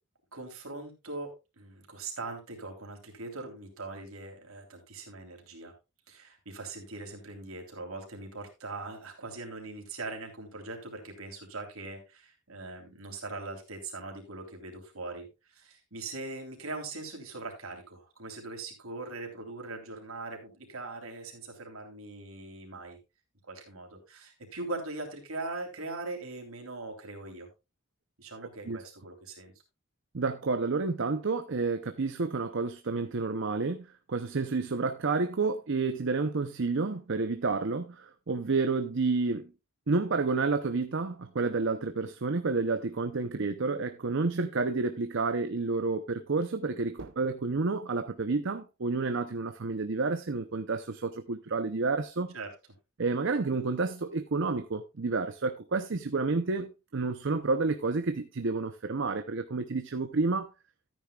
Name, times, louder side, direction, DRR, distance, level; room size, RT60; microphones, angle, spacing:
voice 1, 0.3-1.3 1.6-5.7 6.1-23.0 23.4-27.5 28.2-29.5 52.3-52.5, right 3 dB, 75° right, 3.3 m, -41 dB
voice 2, 30.1-39.5 39.9-52.3 53.0-60.5, right 3 dB, 55° right, 0.7 m, -30 dB
13.5 x 9.6 x 2.3 m
head